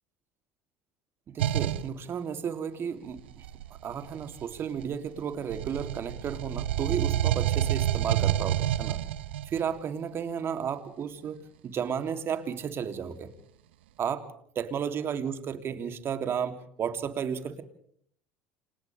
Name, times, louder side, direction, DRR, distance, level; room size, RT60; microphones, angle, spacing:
voice 1, 1.3-3.2 3.8-9.0 9.5-13.3 14.0-14.2 14.5-17.6, right 7 dB, 45° right, 7 dB, 3.2 m, -33 dB
ovni respiratorio, 1.4-1.9 3.2-5.1 5.5-9.6, right 12 dB, 80° right, 0.9 m, -28 dB
30.0 x 27.0 x 3.6 m, 0.63 s
hypercardioid pair, 75°, 6 cm